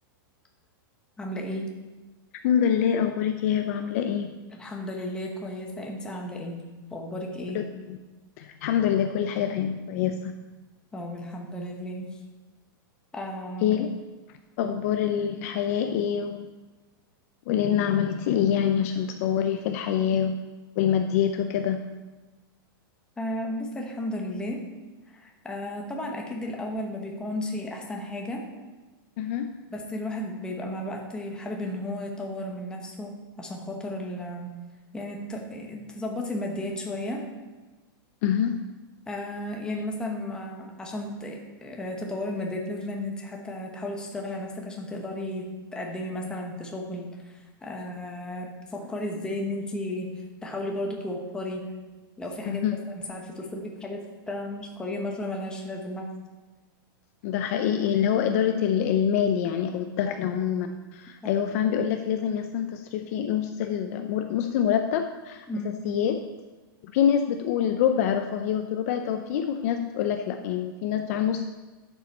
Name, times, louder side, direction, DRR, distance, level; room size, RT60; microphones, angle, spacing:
voice 1, 1.2-1.8 4.6-6.6 6.9-7.6 10.9-12.1 13.1-13.8 14.6-14.7 23.2-24.7 25.1-28.5 29.7-34.5 34.9-37.3 39.1-50.1 50.4-51.7 52.2-56.1 60.1-60.2 65.5-65.8, left 1 dB, 5° left, 0 dB, 1.1 m, -34 dB
voice 2, 2.4-4.3 7.5-8.0 8.4-10.3 13.6-13.9 14.6-16.5 17.5-20.4 20.8-21.8 29.2-29.5 38.2-38.6 52.5-52.8 57.2-66.2 66.8-71.5, left 9 dB, 40° left, 6 dB, 0.5 m, -25 dB
11.5 x 7.0 x 4.2 m, 1.2 s
supercardioid pair, 170°, 12 cm